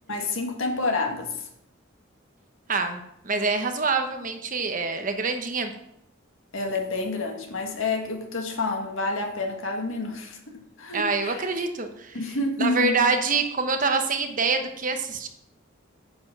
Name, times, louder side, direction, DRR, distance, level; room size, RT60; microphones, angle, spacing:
voice 1, 0.1-1.5 6.5-11.5 12.1-13.0, left 3 dB, 75° left, 3 dB, 1.7 m, -29 dB
voice 2, 2.7-5.7 10.9-12.2 12.6-15.3, right 4 dB, 40° right, 6 dB, 1.1 m, -26 dB
9.5 x 7.0 x 6.0 m, 0.76 s
head